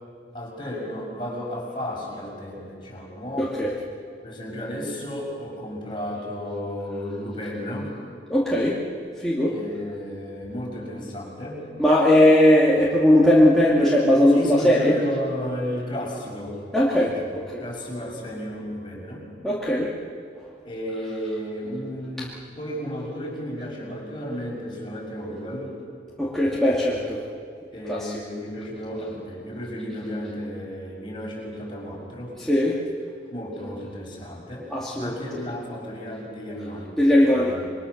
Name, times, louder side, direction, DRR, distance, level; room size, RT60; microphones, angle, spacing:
voice 1, 0.3-3.5 4.2-7.9 9.5-11.6 14.3-16.6 17.1-19.3 20.6-25.8 27.7-32.4 33.3-34.7 35.0-37.0 37.3-37.7, equal, 25° left, -2 dB, 6.2 m, -33 dB
voice 2, 3.4-3.7 8.3-8.8 9.2-9.5 11.8-15.0 16.7-17.6 19.4-19.9 26.2-27.2 27.9-28.1 32.5-32.8 34.7-35.2 37.0-37.6, left 1 dB, 5° left, -7 dB, 2.5 m, -19 dB
27.5 x 22.5 x 6.7 m, 2.4 s
head